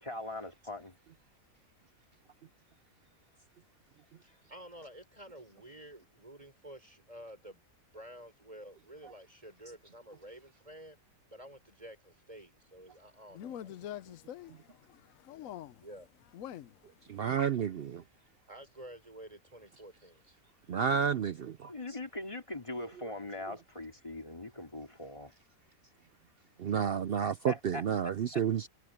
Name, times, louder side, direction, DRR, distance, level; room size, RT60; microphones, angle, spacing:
voice 1, 0.0-0.9 21.7-25.3 27.5-28.1, left 2 dB, 20° left, 2.9 m, -41 dB
voice 2, 4.2-7.6 7.9-11.0 11.3-14.2 15.8-16.1 16.5-16.6 18.5-20.2 23.2-23.4, right 1 dB, 25° right, 6.1 m, -51 dB
voice 3, 13.3-15.8 16.3-16.8, left 11 dB, 70° left, 1.1 m, -45 dB
voice 4, 17.1-18.0 20.7-21.7 26.6-28.7, right 7 dB, 60° right, 0.6 m, -30 dB
omnidirectional pair, 1.5 m